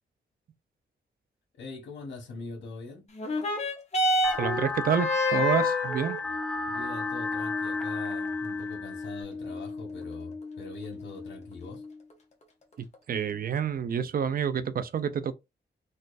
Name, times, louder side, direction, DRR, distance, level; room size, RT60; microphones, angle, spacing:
voice 1, 1.5-3.0 6.7-11.8, left 3 dB, 85° left, 1.4 m, -43 dB
sound 1, 3.1-12.1 12.9-13.0, left 1 dB, 35° left, 1.0 m, -31 dB
sound 2, 4.2-9.2, left 3 dB, 5° left, 0.7 m, -34 dB
voice 2, 4.4-6.2 12.8-15.3, right 7 dB, 50° right, 0.5 m, -28 dB
4.0 x 2.5 x 2.4 m
cardioid pair, 110°, 19 cm